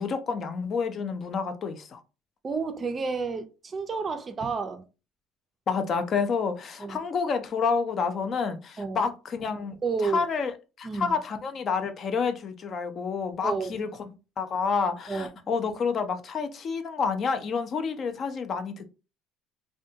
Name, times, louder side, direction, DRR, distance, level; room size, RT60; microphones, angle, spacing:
voice 1, 0.0-2.0 5.7-10.5 10.8-13.9 14.4-18.9, left 5 dB, 40° left, 0.4 m, -29 dB
voice 2, 2.4-4.8 6.8-7.0 8.8-9.0 9.8-10.2 10.8-11.1 13.4-13.7 15.1-15.3, right 4 dB, 30° right, 0.4 m, -30 dB
2.5 x 2.2 x 2.7 m
cardioid pair, 115°, 0 cm